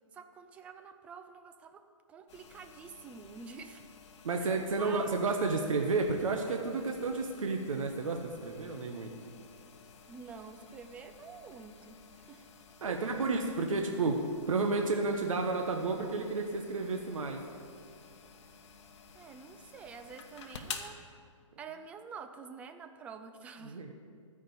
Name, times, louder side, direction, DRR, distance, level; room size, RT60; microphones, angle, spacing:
voice 1, 0.1-1.8 2.1-3.9 4.4-5.3 10.1-12.5 12.8-13.3 19.1-21.1 21.6-23.8, right 5 dB, 10° right, 7 dB, 0.3 m, -48 dB
sound 1, 2.3-20.9, left 6 dB, 60° left, 1.2 m, -52 dB
voice 2, 4.2-9.1 12.8-14.2 14.5-17.4 23.6-23.9, right 3 dB, 85° right, 3 dB, 1.2 m, -31 dB
13.5 x 5.1 x 8.2 m, 2.2 s
hypercardioid pair, 150°, 17 cm